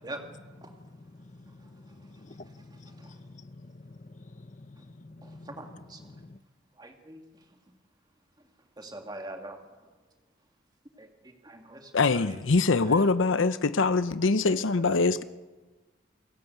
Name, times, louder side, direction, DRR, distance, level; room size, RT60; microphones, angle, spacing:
voice 1, 1.2-3.2 3.6-5.5 6.1-6.4, left 2 dB, 40° left, 0.7 m, -49 dB
voice 2, 2.9-3.2 5.2-6.2 6.8-7.2 8.8-9.6 11.0-12.4 12.8-13.0 14.3-14.6, right 1 dB, 20° right, 2.2 m, -44 dB
voice 3, 11.9-15.2, left 3 dB, 80° left, 0.7 m, -23 dB
29.0 x 17.0 x 8.1 m
head